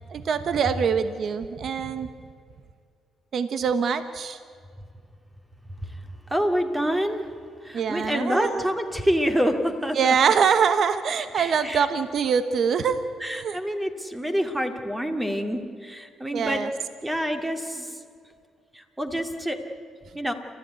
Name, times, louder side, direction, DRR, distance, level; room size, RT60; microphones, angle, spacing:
voice 1, 0.1-2.1 3.3-4.4 7.7-8.7 9.9-13.6 16.3-16.7, right 6 dB, 60° right, 11 dB, 1.1 m, -24 dB
voice 2, 6.3-7.2 7.6-10.0 11.3-11.9 13.2-16.6 17.0-18.0 18.7-19.6 20.1-20.3, equal, 10° right, 6 dB, 2.4 m, -27 dB
29.0 x 13.5 x 9.5 m, 2.2 s
cardioid pair, 90°, 0 cm